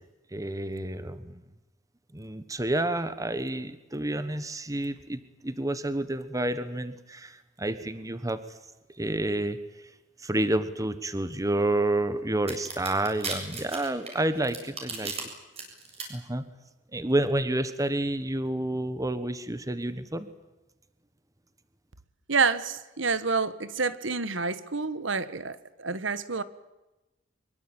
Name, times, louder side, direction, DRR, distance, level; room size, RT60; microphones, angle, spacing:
voice 1, 0.3-1.4 2.1-8.4 9.0-9.6 10.2-15.1 16.1-16.4 16.9-20.3, right 1 dB, 15° right, 1.4 m, -29 dB
sound 1, 12.5-15.2 15.6-16.0, right 4 dB, 35° right, 7.7 m, -35 dB
voice 2, 22.3-26.4, right 4 dB, 70° right, 1.6 m, -28 dB
24.5 x 23.0 x 9.0 m
head